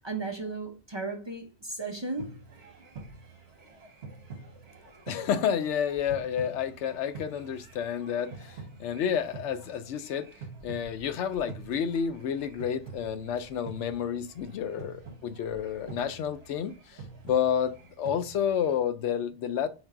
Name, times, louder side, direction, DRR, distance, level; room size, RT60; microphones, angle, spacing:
voice 1, 0.0-2.4, right 3 dB, 30° right, 0.5 m, -35 dB
sound 1, 2.2-18.8, right 4 dB, 65° right, 1.2 m, -47 dB
voice 2, 5.1-10.3 10.6-17.0 17.2-19.7, left 8 dB, 90° left, 0.9 m, -30 dB
4.5 x 3.3 x 3.5 m
omnidirectional pair, 1.1 m